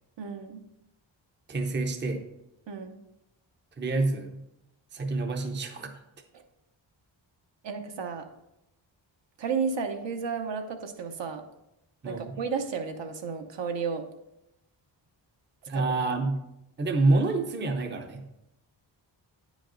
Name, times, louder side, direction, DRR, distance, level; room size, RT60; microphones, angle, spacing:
voice 1, 0.2-0.7 2.7-3.0 7.6-8.3 9.4-11.4 12.0-14.0 15.7-16.0, right 5 dB, 65° right, 5 dB, 0.9 m, -32 dB
voice 2, 1.5-2.2 3.8-4.4 4.9-5.9 12.0-12.4 15.7-16.4 16.8-18.2, right 2 dB, 25° right, 4 dB, 0.6 m, -27 dB
9.3 x 5.2 x 3.8 m, 0.86 s
wide cardioid pair, 155°, 46 cm